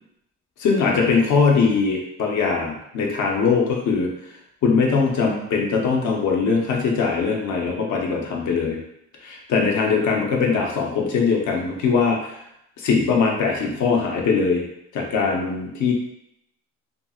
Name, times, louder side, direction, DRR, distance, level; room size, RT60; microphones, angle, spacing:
voice 1, 0.6-4.1 4.6-8.8 9.2-12.4 12.8-14.6 14.9-15.9, left 5 dB, 75° left, 0 dB, 0.7 m, -21 dB
2.7 x 2.7 x 2.3 m, 0.78 s
cardioid pair, 90°, 30 cm